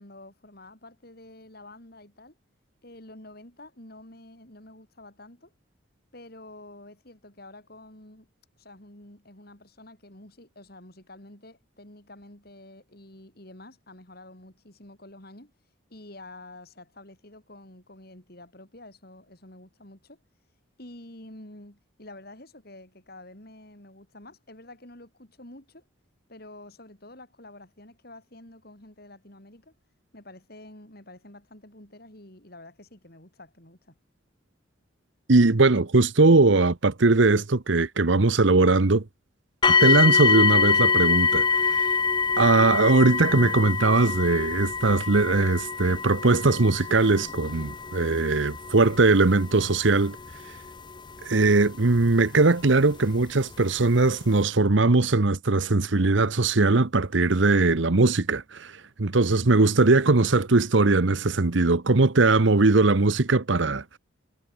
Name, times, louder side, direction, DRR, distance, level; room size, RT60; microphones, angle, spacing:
voice 1, 0.0-2.4 2.8-5.5 6.1-8.3 8.6-15.5 15.9-20.2 20.8-25.8 26.3-29.7 30.1-34.0, left 1 dB, 50° left, 5.3 m, -48 dB
voice 2, 35.3-39.0 39.7-41.9 42.4-50.2 51.2-64.0, right 3 dB, 70° right, 1.0 m, -20 dB
sound 1, 39.6-52.5 53.3-53.4 54.0-54.1, left 5 dB, 25° left, 0.5 m, -25 dB
head